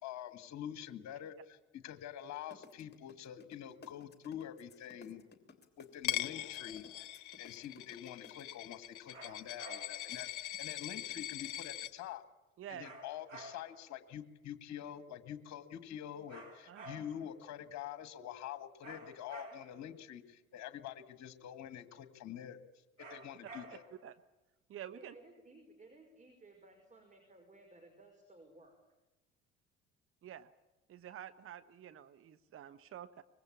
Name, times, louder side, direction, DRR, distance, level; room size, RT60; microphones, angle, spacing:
voice 1, 0.0-1.6 1.8-5.2 5.8-7.1 7.4-12.2 12.7-22.6 23.1-23.8, left 10 dB, 50° left, 11 dB, 1.9 m, -46 dB
sound 1, 2.5-8.4, left 4 dB, 30° left, 3.1 m, -57 dB
Coin (dropping), 6.0-11.9, left 13 dB, 65° left, 1.0 m, -42 dB
sound 2, 9.1-10.1 12.8-13.9 16.3-17.3 18.8-19.9 23.0-24.1, right 2 dB, 85° right, 3.0 m, -52 dB
voice 2, 12.6-12.9 16.7-17.0 24.0-24.1 24.7-25.1 30.2-30.5 30.9-33.2, right 10 dB, 35° right, 12 dB, 1.1 m, -49 dB
voice 3, 24.9-28.8, right 2 dB, 20° right, 4 dB, 5.2 m, -59 dB
24.0 x 21.5 x 8.6 m, 1.0 s
figure-of-eight pair, 60°, 36 cm